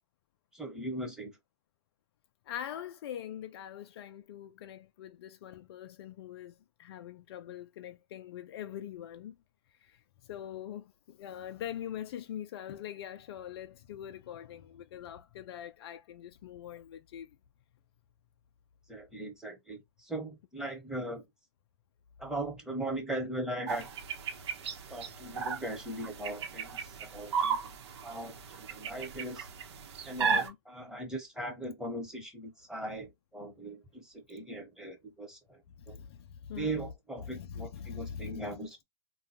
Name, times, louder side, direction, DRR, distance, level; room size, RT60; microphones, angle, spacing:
voice 1, 0.5-1.3 18.9-21.2 22.2-23.9 24.9-27.7 28.0-29.5 30.0-35.6 35.9-36.0 36.6-38.8, right 1 dB, 5° right, 1.1 m, -39 dB
voice 2, 2.5-9.4 9.8-17.4 30.2-30.6 35.8-36.8 37.2-38.5, left 10 dB, 65° left, 0.4 m, -43 dB
sound 1, 23.7-30.5, right 6 dB, 70° right, 0.9 m, -35 dB
3.8 x 2.3 x 2.8 m
hypercardioid pair, 115°, 14 cm